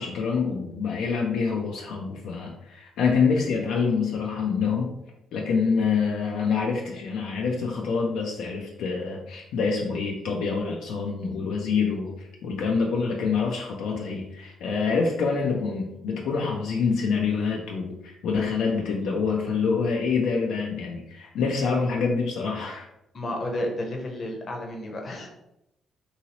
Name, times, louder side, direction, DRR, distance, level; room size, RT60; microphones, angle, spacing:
voice 1, 0.0-4.9 5.3-22.9, left 5 dB, 85° left, -1 dB, 0.4 m, -26 dB
voice 2, 23.1-25.3, left 1 dB, 45° left, 1 dB, 0.7 m, -31 dB
2.8 x 2.8 x 2.8 m, 0.85 s
cardioid pair, 90°, 0 cm